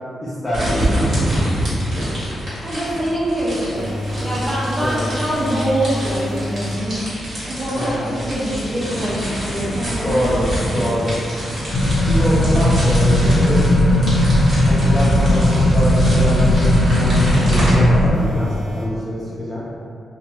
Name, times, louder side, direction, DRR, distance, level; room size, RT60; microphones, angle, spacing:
voice 1, 0.2-1.1 4.8-5.0 7.8-8.2 10.0-10.5 10.7-11.2 12.0-13.6 14.6-15.5 15.7-17.2 17.5-19.6, equal, 15° left, -10 dB, 0.5 m, -24 dB
sound 1, 0.5-17.7, equal, 50° right, 1.2 m, -27 dB
voice 2, 2.6-6.9 7.5-9.1 9.4-10.2 10.7-10.9, right 1 dB, 30° right, -14 dB, 0.8 m, -24 dB
sound 2, 3.7-6.8 18.1-18.9, equal, 90° right, 0.7 m, -28 dB
sound 3, 11.7-18.1, left 1 dB, 70° left, 0.5 m, -16 dB
2.8 x 2.1 x 3.0 m, 2.2 s
wide cardioid pair, 130°, 0 cm